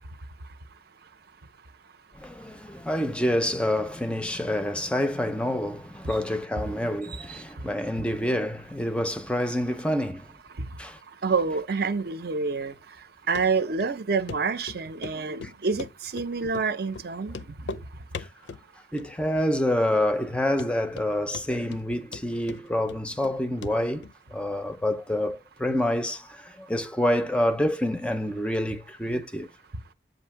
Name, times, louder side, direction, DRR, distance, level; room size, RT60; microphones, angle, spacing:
voice 1, 2.2-10.3 10.8-11.0 15.4-15.5 16.4-16.5 18.2-18.3 18.9-29.5, left 1 dB, 5° left, 0.5 m, -27 dB
voice 2, 11.2-12.7 13.3-15.9 16.1-17.4, right 4 dB, 60° right, 0.6 m, -27 dB
Run, 13.4-13.5 13.8-13.9 14.3-14.4 14.7-15.2 15.4-16.3 16.5-16.7 16.9-17.1 17.3-17.8 18.1-18.6 19.0-19.4 19.7-19.8 20.2-20.3 20.6-21.1 21.3-21.8 22.1-23.4 23.6-23.7 24.0-24.1, left 4 dB, 85° left, 0.5 m, -38 dB
7.9 x 2.7 x 5.7 m
head